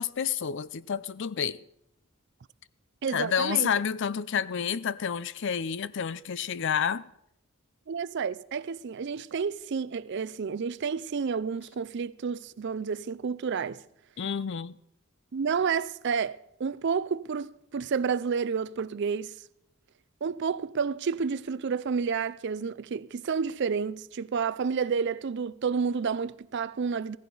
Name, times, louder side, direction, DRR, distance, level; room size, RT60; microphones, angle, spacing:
voice 1, 0.0-1.6 3.1-7.0 14.2-14.8, left 7 dB, 55° left, 0.4 m, -29 dB
voice 2, 3.0-3.7 7.9-13.8 15.3-19.3 20.2-27.2, right 6 dB, 55° right, 0.4 m, -30 dB
16.0 x 15.5 x 4.0 m
head